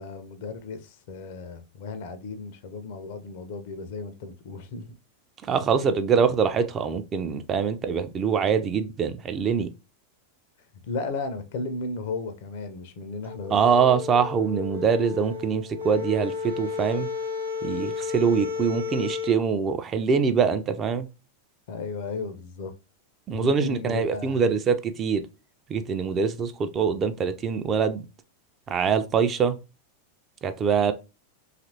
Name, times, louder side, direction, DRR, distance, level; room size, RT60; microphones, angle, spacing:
voice 1, 0.0-4.9 10.8-13.5 21.7-22.7 23.3-24.4, left 3 dB, 50° left, 0.5 m, -35 dB
voice 2, 5.5-9.7 13.5-17.1 17.6-21.1 23.3-25.2 25.7-28.1 28.7-29.6 30.4-30.9, right 6 dB, 25° right, 0.3 m, -24 dB
sound 1, 13.2-19.4, left 5 dB, 85° right, 0.6 m, -33 dB
2.8 x 2.4 x 2.7 m
figure-of-eight pair, 90°, 0 cm